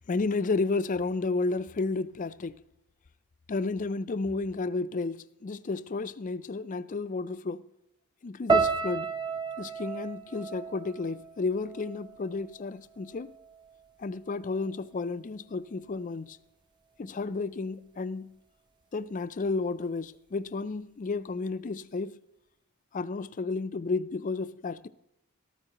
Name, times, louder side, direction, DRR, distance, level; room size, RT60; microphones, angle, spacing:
voice 1, 0.1-2.6 3.5-7.7 8.2-9.1 9.6-13.3 14.0-16.4 17.0-18.4 18.9-22.2 22.9-24.9, left 3 dB, 35° left, 0.4 m, -32 dB
sound 1, 8.5-12.7 13.0-13.7 14.3-14.6, right 4 dB, 20° right, 0.7 m, -32 dB
13.5 x 13.5 x 3.0 m
head